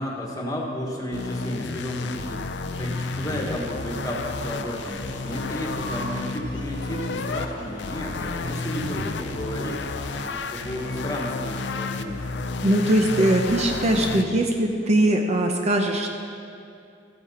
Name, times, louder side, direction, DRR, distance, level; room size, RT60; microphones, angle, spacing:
voice 1, 0.0-2.4 2.8-5.0 5.2-9.8 10.2-12.2, equal, 20° left, -1 dB, 1.4 m, -32 dB
sound 1, 1.1-7.5 7.8-14.2, left 3 dB, 70° left, 0.5 m, -31 dB
sound 2, 2.7-11.2, left 2 dB, 85° left, 1.0 m, -40 dB
voice 2, 12.6-16.1, right 1 dB, 35° right, 3 dB, 0.7 m, -21 dB
14.0 x 8.7 x 4.3 m, 2.5 s
head